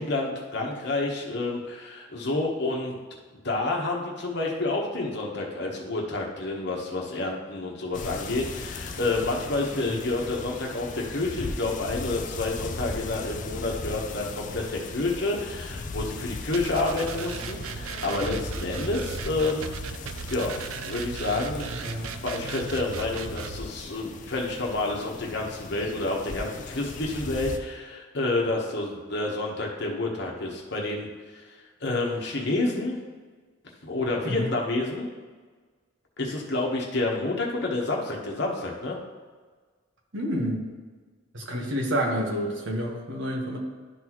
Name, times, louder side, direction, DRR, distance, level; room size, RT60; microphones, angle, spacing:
voice 1, 0.0-2.9 3.3-19.7 20.3-21.7 22.2-31.1 31.3-31.4 31.8-33.0 33.8-35.1 36.2-39.0, left 2 dB, 55° left, -1 dB, 1.1 m, -29 dB
sound 1, 7.9-27.6, left 3 dB, 35° left, 0.4 m, -38 dB
sound 2, 16.5-23.6, right 5 dB, 80° right, 0.5 m, -36 dB
voice 2, 40.1-40.6 41.3-43.6, equal, 65° right, -1 dB, 1.4 m, -29 dB
11.5 x 4.0 x 3.0 m, 1.4 s
head